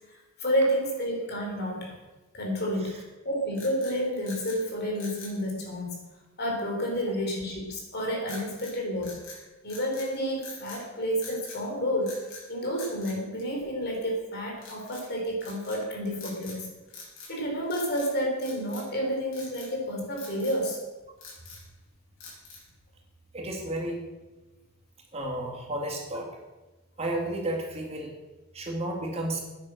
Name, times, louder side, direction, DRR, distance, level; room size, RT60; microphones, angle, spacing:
voice 1, 0.0-2.0 2.3-6.0 6.4-9.2 9.6-16.7 17.3-20.8, equal, 45° left, 0 dB, 4.1 m, -30 dB
sound 1, 3.5-4.6 4.9-5.4 8.3-8.8 9.0-10.1 10.4-10.8 11.2-11.6 12.0-12.5 12.8-14.0 14.6-15.0 15.4-15.8 16.2-16.6 16.9-17.4 17.6-18.1 18.4-19.0 19.3-19.7 20.2-20.6 21.0-21.7 22.2-22.7, left 3 dB, 65° left, 6.2 m, -45 dB
voice 2, 23.3-24.0 25.1-26.3 27.0-28.1 28.5-29.4, right 1 dB, 30° right, 0 dB, 2.3 m, -32 dB
13.5 x 9.9 x 6.5 m, 1.1 s
head